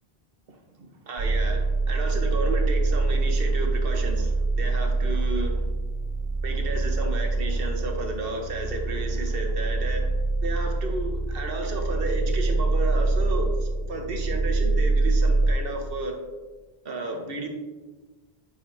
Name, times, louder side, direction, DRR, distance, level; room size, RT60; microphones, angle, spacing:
voice 1, 0.8-5.7 6.4-10.1 10.4-16.2 16.8-17.5, right 2 dB, 65° right, 3 dB, 1.1 m, -32 dB
sound 1, 1.2-15.5, right 3 dB, 45° right, 0.7 m, -25 dB
9.7 x 4.0 x 2.6 m, 1.2 s
omnidirectional pair, 1.0 m